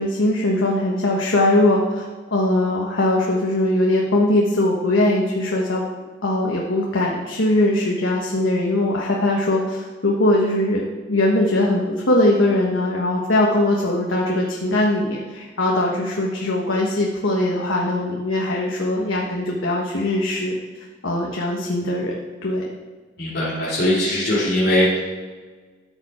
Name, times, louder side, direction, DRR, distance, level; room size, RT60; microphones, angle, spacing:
voice 1, 0.0-2.0 2.3-5.8 6.2-10.8 11.1-20.6 21.0-22.1 22.4-22.6, left 1 dB, 90° left, -2 dB, 1.4 m, -20 dB
voice 2, 23.2-25.0, left 1 dB, 55° left, -10 dB, 3.2 m, -20 dB
13.5 x 7.0 x 4.4 m, 1.4 s
head